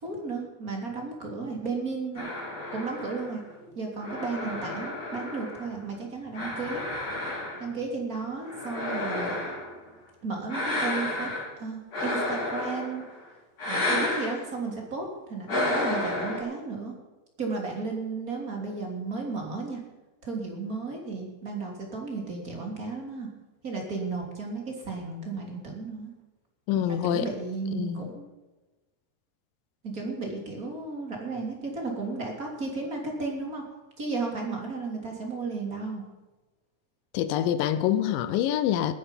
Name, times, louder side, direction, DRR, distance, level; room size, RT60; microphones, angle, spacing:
voice 1, 0.0-2.2 2.7-3.4 3.7-6.8 7.6-9.4 10.2-11.3 11.6-13.0 13.6-16.9 17.4-19.8 20.2-23.3 23.6-26.1 26.9-28.3 29.8-33.6 34.0-36.0, right 4 dB, 25° right, 0 dB, 3.2 m, -34 dB
sound 1, 2.2-5.9 6.3-7.8 8.4-9.8 10.5-11.5 11.9-13.1 13.6-14.4 15.5-16.4, left 1 dB, 65° left, 6.9 m, -31 dB
voice 2, 26.7-27.3 27.8-28.1 37.1-38.9, left 11 dB, 90° left, 12 dB, 2.5 m, -26 dB
20.0 x 10.0 x 5.4 m, 1.1 s
omnidirectional pair, 3.9 m